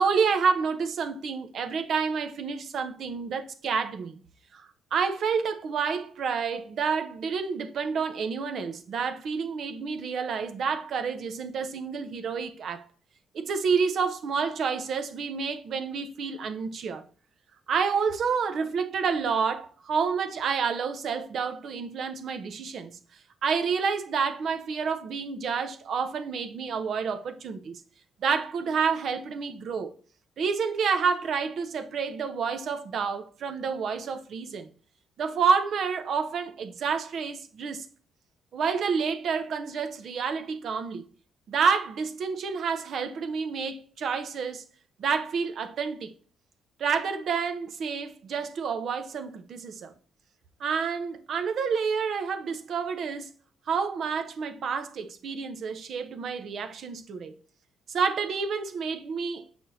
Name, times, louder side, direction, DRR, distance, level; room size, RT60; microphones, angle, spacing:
voice 1, 0.0-4.2 4.5-12.8 13.3-17.0 17.7-23.0 23.4-27.8 28.2-29.9 30.4-34.7 35.2-37.9 38.5-41.0 41.5-44.7 45.0-46.1 46.8-49.9 50.6-53.3 53.7-57.3 57.9-59.4, right 5 dB, 65° right, 0.8 m, -29 dB
6.3 x 6.0 x 2.7 m
cardioid pair, 90°, 0 cm